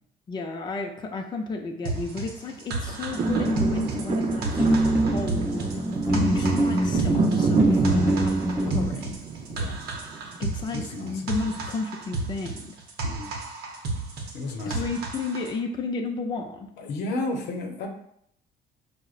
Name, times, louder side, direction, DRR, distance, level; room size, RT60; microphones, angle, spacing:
voice 1, 0.3-5.6 6.1-9.2 10.4-12.8 14.7-16.7, left 3 dB, 25° left, 3 dB, 0.4 m, -32 dB
sound 1, 1.8-15.5, right 3 dB, 70° right, 0.7 m, -33 dB
sound 2, 2.8-11.0 11.5-11.6, right 5 dB, 40° right, 0.4 m, -30 dB
sound 3, 3.2-8.8, right 1 dB, 15° right, 0.7 m, -24 dB
voice 2, 10.7-11.6 13.0-13.3 14.3-14.8 16.8-17.9, left 2 dB, 80° left, 3 dB, 0.7 m, -33 dB
4.8 x 2.1 x 2.4 m, 0.70 s
cardioid pair, 110°, 17 cm